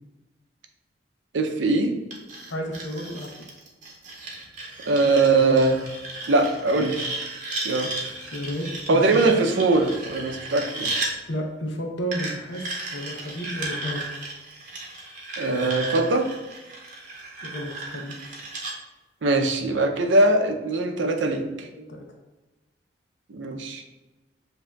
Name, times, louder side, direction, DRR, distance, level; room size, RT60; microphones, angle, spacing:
voice 1, 1.3-2.0 4.8-5.8 6.3-7.1 7.6-7.9 8.9-10.9 15.4-16.3 19.2-21.7 23.3-23.8, right 2 dB, 90° right, 4 dB, 0.5 m, -21 dB
sound 1, 2.1-11.1 12.1-18.7, right 2 dB, 40° right, 0.8 m, -35 dB
voice 2, 2.5-3.4 8.0-9.6 10.8-10.9 11.3-12.6 12.9-14.0 17.4-18.4 21.4-22.1, equal, 80° left, 2 dB, 0.8 m, -33 dB
7.4 x 2.7 x 2.3 m, 1.1 s
head